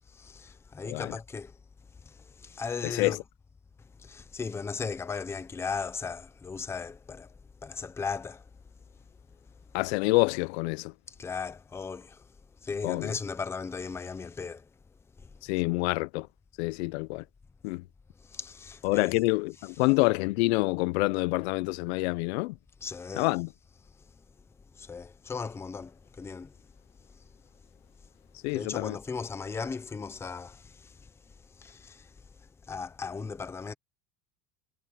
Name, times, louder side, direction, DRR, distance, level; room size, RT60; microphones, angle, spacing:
voice 1, 0.2-1.5 2.4-3.2 4.0-7.3 7.6-8.4 11.2-12.2 12.6-14.6 18.3-19.1 22.8-23.3 24.8-26.5 28.5-30.9 31.6-32.1 32.7-33.7, left 5 dB, 10° left, 0.6 m, -37 dB
voice 2, 2.8-3.2 9.7-10.9 12.8-13.1 15.5-16.3 16.6-17.2 17.6-17.8 18.8-22.5 23.1-23.5 28.4-29.0, left 24 dB, 75° left, 0.6 m, -27 dB
cardioid pair, 165°, 33 cm